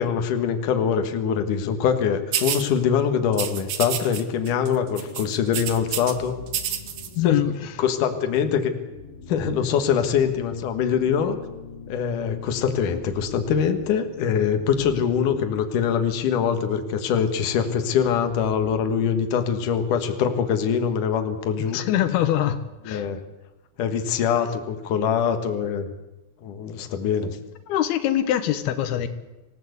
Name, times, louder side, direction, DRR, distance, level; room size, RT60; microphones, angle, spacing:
voice 1, 0.0-6.3 7.2-7.3 7.8-8.7 9.3-11.4 11.9-21.8 22.9-23.2 23.8-25.9 26.4-27.4, left 7 dB, 60° left, 7 dB, 2.9 m, -23 dB
sound 1, 2.3-2.7 3.3-4.2 4.5-4.7 5.0-6.1 6.5-7.1, right 10 dB, 65° right, 2.7 m, -28 dB
sound 2, 4.7-18.8, left 4 dB, 40° left, 5.5 m, -43 dB
voice 2, 7.2-7.5 21.7-22.6 22.8-23.1 27.7-29.1, left 12 dB, 90° left, 10 dB, 3.0 m, -23 dB
26.0 x 16.0 x 8.1 m, 1.0 s
omnidirectional pair, 4.4 m